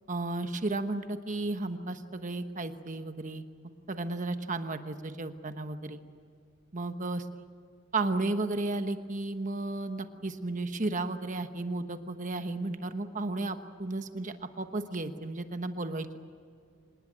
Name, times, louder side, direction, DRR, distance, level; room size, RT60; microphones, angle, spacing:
voice 1, 0.1-3.5 3.9-6.0 6.7-7.2 7.9-16.2, right 2 dB, 40° right, 8 dB, 1.2 m, -33 dB
26.5 x 19.5 x 9.0 m, 2.2 s
head